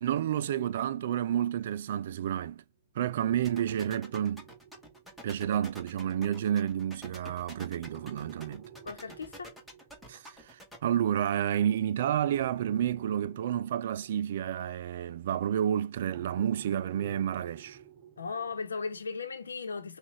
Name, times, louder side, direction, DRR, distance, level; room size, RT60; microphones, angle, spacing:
voice 1, 0.0-2.6 3.0-4.4 5.2-8.6 10.1-17.8, right 10 dB, 60° right, 0.3 m, -30 dB
sound 1, 1.8-2.0 3.2-6.2 7.8-11.1 12.3-15.5 16.1-19.4, right 8 dB, 35° right, 0.9 m, -52 dB
sound 2, 3.4-10.8, equal, ahead, 1.4 m, -47 dB
voice 2, 8.8-9.5 18.2-20.0, left 4 dB, 85° left, 0.9 m, -37 dB
5.9 x 2.4 x 3.2 m
hypercardioid pair, 120°, 0 cm